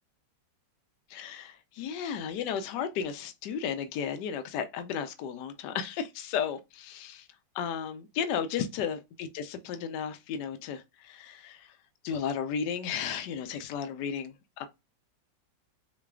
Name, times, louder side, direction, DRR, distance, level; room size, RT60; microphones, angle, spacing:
voice 1, 1.1-7.2 7.5-11.7 12.0-14.7, left 7 dB, 70° left, 1.2 m, -34 dB
3.7 x 3.2 x 2.3 m
omnidirectional pair, 2.1 m